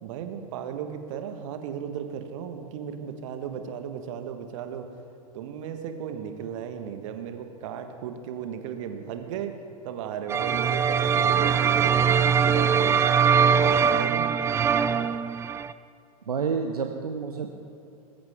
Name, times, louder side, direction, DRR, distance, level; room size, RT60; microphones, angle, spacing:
voice 1, 0.0-4.9 5.3-9.5 9.8-12.1 12.4-13.0 13.5-14.3, right 8 dB, 55° right, 7 dB, 1.5 m, -35 dB
sound 1, 10.3-15.7, right 7 dB, 15° right, 0.3 m, -22 dB
voice 2, 16.3-17.5, right 6 dB, 80° right, 5 dB, 0.8 m, -29 dB
20.0 x 14.5 x 3.6 m, 2.8 s
figure-of-eight pair, 90°, 19 cm